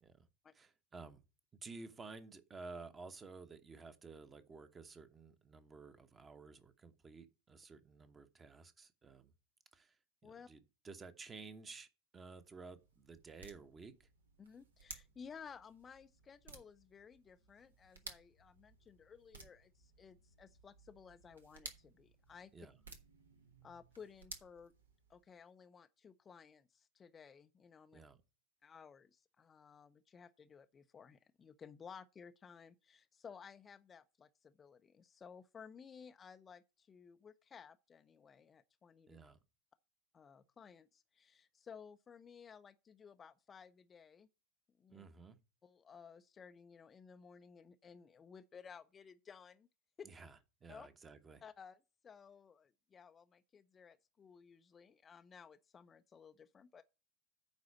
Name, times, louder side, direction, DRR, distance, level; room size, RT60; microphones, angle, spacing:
voice 1, 0.5-1.2 1.6-9.3 9.7-9.9 10.2-11.9 12.1-14.1 22.5-22.7 27.9-28.2 39.1-39.4 44.9-45.4 50.0-51.4, right 4 dB, 20° right, 1.0 m, -53 dB
sound 1, 12.3-25.4, right 3 dB, 75° right, 1.4 m, -57 dB
voice 2, 14.4-22.7 23.6-24.7 25.1-28.1 28.6-39.2 40.1-44.3 44.8-45.0 45.6-49.7 50.0-50.1 50.7-50.9 51.4-56.8, left 6 dB, 25° left, 0.5 m, -57 dB
9.5 x 4.0 x 7.0 m
figure-of-eight pair, 85°, 0 cm